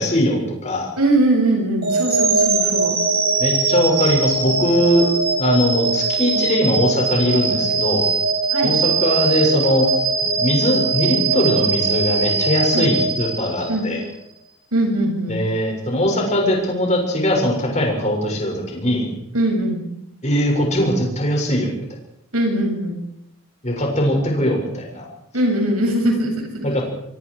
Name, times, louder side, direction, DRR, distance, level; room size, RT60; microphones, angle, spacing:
voice 1, 0.0-0.9 3.4-5.1 5.4-8.0 8.6-9.9 10.4-14.0 15.3-19.1 20.2-21.7 23.6-25.1 26.6-26.8, equal, 30° left, 0 dB, 7.2 m, -20 dB
voice 2, 1.0-3.0 8.5-8.8 12.7-13.0 13.7-13.8 14.7-15.4 19.3-19.8 22.3-23.0 25.3-26.5, right 1 dB, 85° right, 2 dB, 7.8 m, -20 dB
sound 1, 1.8-13.9, right 4 dB, 45° right, 7.9 m, -21 dB
25.0 x 24.5 x 5.1 m, 0.77 s
head